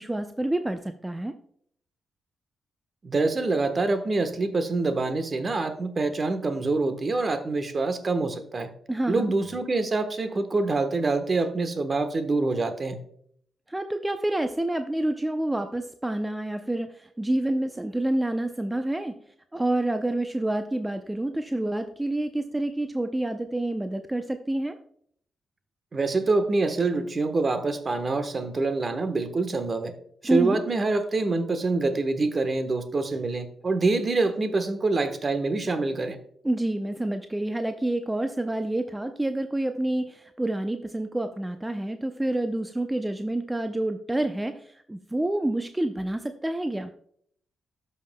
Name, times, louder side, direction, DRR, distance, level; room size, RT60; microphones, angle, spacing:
voice 1, 0.0-1.3 8.9-9.3 13.7-19.2 19.5-24.8 30.2-30.6 36.4-46.9, right 1 dB, 15° right, 8 dB, 0.5 m, -28 dB
voice 2, 3.0-8.7 9.1-13.0 25.9-29.9 30.3-36.2, right 3 dB, 45° right, 9 dB, 1.1 m, -26 dB
13.0 x 5.6 x 2.2 m, 0.65 s
supercardioid pair, 50°, 0 cm